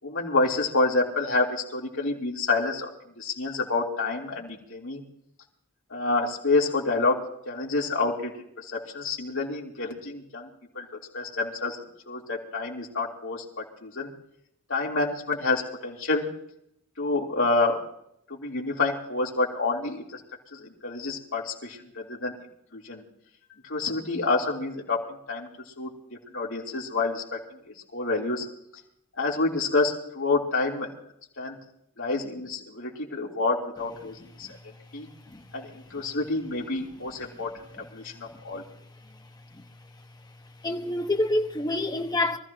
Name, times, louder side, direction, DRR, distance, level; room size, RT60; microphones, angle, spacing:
voice 1, 0.0-2.9 3.2-5.0 5.9-7.2 7.5-10.5 10.7-10.9 11.1-11.8 12.1-14.1 14.7-16.2 17.0-17.8 18.4-20.2 20.5-22.3 22.7-23.0 23.7-25.0 25.3-25.5 25.8-25.9 26.3-27.4 27.9-28.5 29.2-30.9 31.4-31.6 32.0-34.5 34.9-35.1 35.5-37.5 37.9-38.6, left 3 dB, 65° left, 3.6 m, -28 dB
voice 2, 40.6-42.4, left 2 dB, 20° left, 1.3 m, -27 dB
25.0 x 14.5 x 3.0 m
head